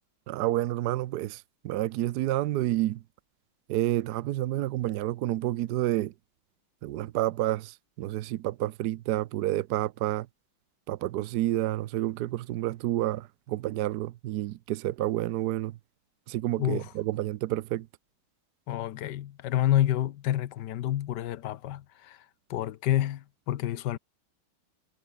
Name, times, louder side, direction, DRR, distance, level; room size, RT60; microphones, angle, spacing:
voice 1, 0.3-3.0 3.7-6.1 6.8-10.3 10.9-15.8 16.3-17.9, right 15 dB, 75° right, 0.9 m, -29 dB
voice 2, 18.7-22.2 22.5-24.0, left 12 dB, 65° left, 1.3 m, -28 dB
omnidirectional pair, 2.3 m